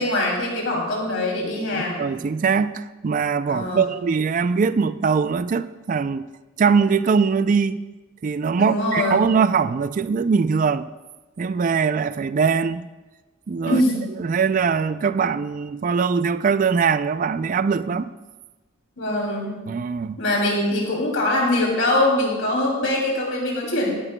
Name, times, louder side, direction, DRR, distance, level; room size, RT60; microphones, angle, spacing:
voice 1, 0.0-2.0 3.5-3.9 8.6-9.2 13.7-14.1 19.0-19.5 20.2-23.9, left 1 dB, 70° left, 2.7 m, -22 dB
voice 2, 1.7-6.3 6.6-7.8 8.2-10.9 11.4-12.9 13.5-13.8 14.2-18.1 19.7-20.2, right 5 dB, 40° right, 0.3 m, -22 dB
19.0 x 11.0 x 2.2 m
head